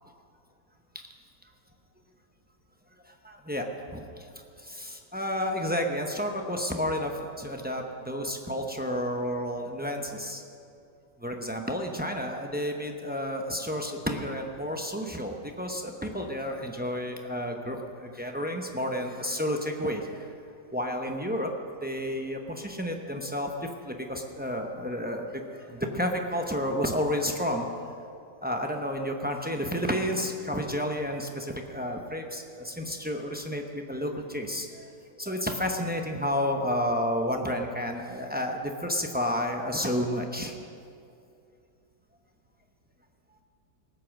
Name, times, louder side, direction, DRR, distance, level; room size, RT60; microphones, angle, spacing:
voice 1, 3.0-4.3 4.6-10.4 11.2-20.4 20.7-21.5 21.8-27.7 28.4-34.9 35.1-40.5, equal, 15° right, 2 dB, 0.3 m, -31 dB
19.0 x 8.4 x 6.4 m, 2.5 s
omnidirectional pair, 1.9 m